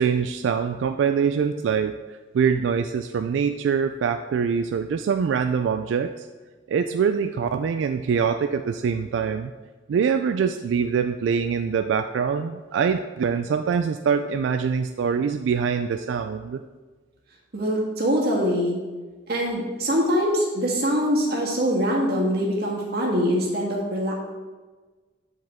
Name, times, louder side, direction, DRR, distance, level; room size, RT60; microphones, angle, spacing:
voice 1, 0.0-6.3 6.7-9.5 9.9-16.6, right 6 dB, 90° right, 8 dB, 0.3 m, -24 dB
voice 2, 17.5-18.8 19.3-24.1, equal, 60° right, -2 dB, 1.6 m, -23 dB
7.9 x 5.1 x 3.6 m, 1.3 s
head